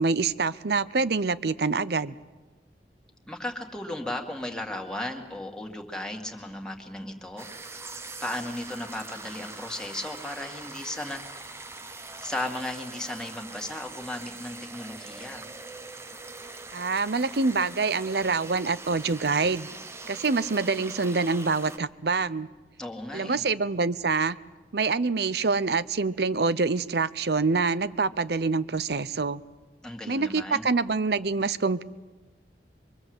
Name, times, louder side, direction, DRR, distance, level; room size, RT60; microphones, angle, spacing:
voice 1, 0.0-2.1 16.7-19.7 20.1-22.5 23.1-24.4 24.7-29.4 30.1-31.8, right 4 dB, 65° right, 16 dB, 0.7 m, -26 dB
voice 2, 3.3-7.5 8.2-11.4 12.2-15.4 22.8-23.4 29.8-30.7, left 1 dB, 5° left, 2 dB, 2.1 m, -35 dB
sound 1, 7.4-21.8, right 3 dB, 15° right, 0.9 m, -42 dB
24.0 x 24.0 x 7.9 m, 1.3 s
head